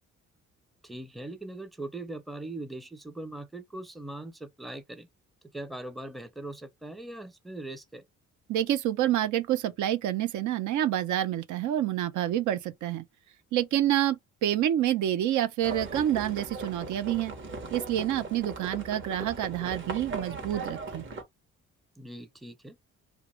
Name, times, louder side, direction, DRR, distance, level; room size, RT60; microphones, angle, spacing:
voice 1, 0.8-5.1 5.5-8.0 22.0-22.8, right 2 dB, ahead, 0.5 m, -40 dB
voice 2, 8.5-13.0 13.5-17.3 17.7-21.1, right 12 dB, 75° right, 0.5 m, -28 dB
Livestock farm animals working animals, 15.6-21.2, right 3 dB, 40° right, 0.9 m, -38 dB
2.5 x 2.3 x 3.0 m
cardioid pair, 90°, 30 cm